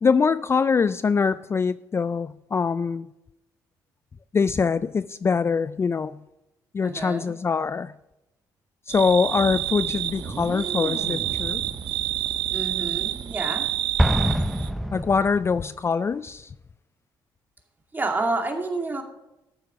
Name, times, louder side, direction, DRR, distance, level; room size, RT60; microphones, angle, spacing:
voice 1, 0.0-3.1 4.3-6.2 6.7-7.9 8.9-11.6 14.9-16.5, left 5 dB, 30° left, 0.3 m, -23 dB
voice 2, 6.8-7.3 12.5-13.7 17.9-19.0, right 3 dB, 25° right, 2.4 m, -29 dB
sound 1, 8.9-14.7, right 13 dB, 75° right, 0.7 m, -28 dB
sound 2, 9.3-14.2, right 4 dB, 45° right, 2.2 m, -37 dB
Explosion, 14.0-15.8, equal, ahead, 0.8 m, -24 dB
13.5 x 7.4 x 5.2 m
supercardioid pair, 75°, 8 cm